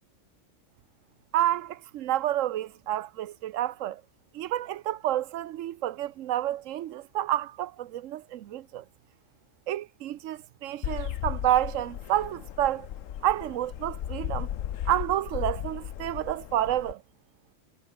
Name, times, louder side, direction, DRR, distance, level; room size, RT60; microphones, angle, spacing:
voice 1, 1.3-4.0 4.3-8.8 9.7-12.9 13.2-14.5 14.9-17.0, right 13 dB, 80° right, 1.0 m, -29 dB
sound 1, 10.8-16.9, left 11 dB, 80° left, 1.2 m, -35 dB
omnidirectional pair, 1.3 m